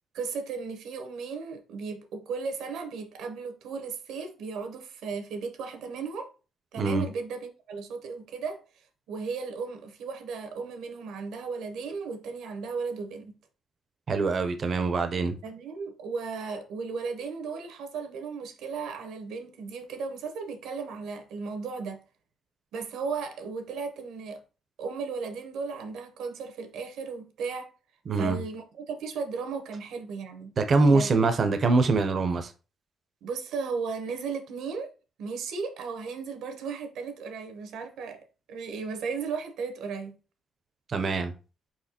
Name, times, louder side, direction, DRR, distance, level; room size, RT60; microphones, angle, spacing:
voice 1, 0.1-6.3 6.7-13.3 15.4-22.0 22.7-24.4 24.8-27.7 28.1-30.5 30.8-31.1 33.2-34.9 35.2-40.2, right 5 dB, 85° right, 0.9 m, -35 dB
voice 2, 14.1-15.4 28.1-28.4 30.6-32.5 40.9-41.3, right 3 dB, 50° right, 0.6 m, -24 dB
4.5 x 4.1 x 2.8 m
cardioid pair, 90°, 0 cm